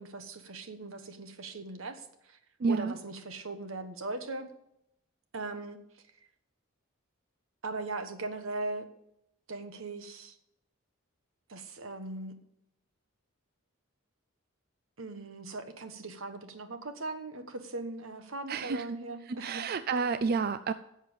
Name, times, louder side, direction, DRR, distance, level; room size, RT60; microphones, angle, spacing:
voice 1, 0.0-2.4 2.7-4.5 5.3-6.0 7.6-8.9 9.5-10.4 11.5-12.4 15.0-19.6, right 2 dB, 70° right, 9 dB, 1.3 m, -39 dB
voice 2, 2.6-2.9 18.5-18.9 19.3-20.7, right 4 dB, 45° right, 13 dB, 0.4 m, -30 dB
11.0 x 7.4 x 7.2 m, 0.81 s
head